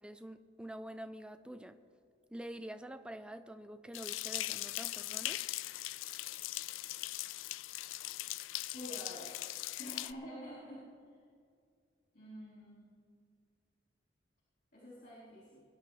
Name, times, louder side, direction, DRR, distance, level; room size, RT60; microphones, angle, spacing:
voice 1, 0.0-1.8 2.3-5.4, right 1 dB, 5° right, 10 dB, 0.5 m, -47 dB
sound 1, 3.9-10.1, left 16 dB, 90° left, 0.3 m, -40 dB
voice 2, 8.7-9.4 9.8-11.2 12.1-12.9 14.7-15.6, equal, 50° left, -8 dB, 3.9 m, -48 dB
22.0 x 11.0 x 3.3 m, 2.2 s
head